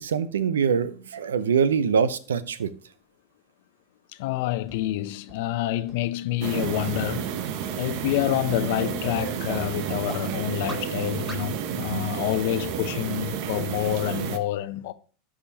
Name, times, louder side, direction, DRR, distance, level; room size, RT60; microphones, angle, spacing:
voice 1, 0.0-2.7, right 6 dB, 90° right, 0.6 m, -24 dB
voice 2, 4.2-7.3 7.8-14.9, left 15 dB, 70° left, 0.6 m, -28 dB
sound 1, 4.7-4.8 5.3-5.4 5.9-6.0 6.5-6.6 7.1-7.2 7.7-7.8 8.3-8.4 8.9-9.0 9.5-9.6 10.1-10.2 10.7-10.8 11.3-11.4, right 2 dB, 25° right, 2.5 m, -38 dB
sound 2, 6.4-14.4, right 8 dB, 60° right, 0.9 m, -31 dB
12.5 x 5.0 x 2.9 m
hypercardioid pair, 100°, 0 cm